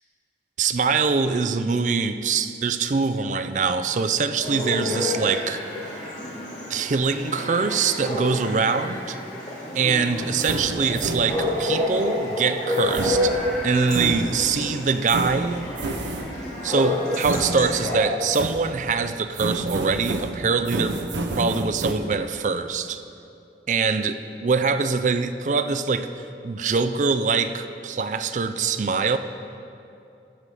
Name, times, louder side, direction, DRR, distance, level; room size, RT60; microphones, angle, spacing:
voice 1, 0.6-5.6 6.7-9.2 9.8-13.4 13.6-15.7 16.6-21.0 21.3-23.0 23.7-29.2, right 5 dB, 45° right, 10 dB, 0.4 m, -23 dB
Chatter / Bark / Livestock farm animals working animals, 4.4-18.0, left 1 dB, 40° left, 2.6 m, -29 dB
sound 1, 10.2-11.7 12.7-14.6 15.1-16.5 17.2-18.0 18.3-19.0 19.4-21.9, right 2 dB, 90° right, 0.8 m, -30 dB
14.5 x 5.6 x 4.8 m, 2.6 s
head